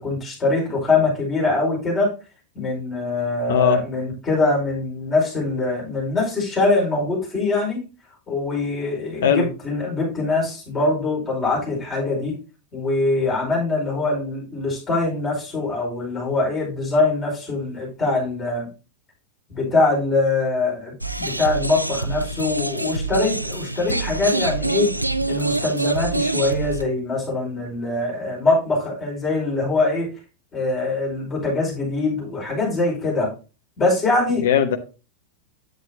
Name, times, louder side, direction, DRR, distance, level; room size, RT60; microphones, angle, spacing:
voice 1, 0.0-2.1 2.5-7.8 8.3-12.3 12.7-18.7 19.5-24.9 25.3-30.1 30.5-33.3 33.8-34.5, left 3 dB, 25° left, -3 dB, 5.0 m, -23 dB
voice 2, 3.5-3.8 9.2-9.5 34.4-34.8, left 7 dB, 60° left, 8 dB, 1.0 m, -18 dB
sound 1, 21.0-26.8, right 2 dB, 85° right, 0.4 m, -25 dB
9.0 x 8.2 x 2.9 m, 0.32 s
figure-of-eight pair, 90°, 0 cm